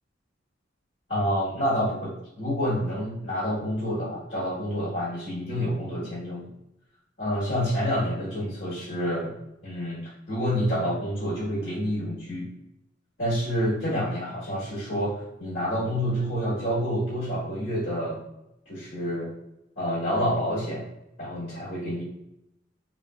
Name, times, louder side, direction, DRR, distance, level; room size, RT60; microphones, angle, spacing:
voice 1, 1.1-6.5 7.2-9.3 9.6-12.5 13.2-18.2 18.6-19.3 19.8-20.8 21.2-22.0, equal, 55° left, -10 dB, 1.4 m, -28 dB
3.4 x 2.6 x 2.3 m, 0.84 s
head